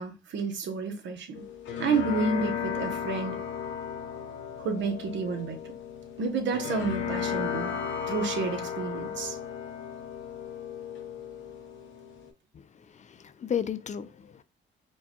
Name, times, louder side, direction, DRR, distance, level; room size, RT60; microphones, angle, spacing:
voice 1, 0.0-1.4 1.8-3.4 4.6-5.7 6.2-7.8 8.1-9.4, right 4 dB, 70° right, 0.9 m, -30 dB
sound 1, 1.3-12.3, left 7 dB, 75° left, 0.9 m, -35 dB
voice 2, 12.5-14.4, left 8 dB, 40° left, 0.4 m, -34 dB
4.5 x 2.2 x 2.9 m
cardioid pair, 90°, 20 cm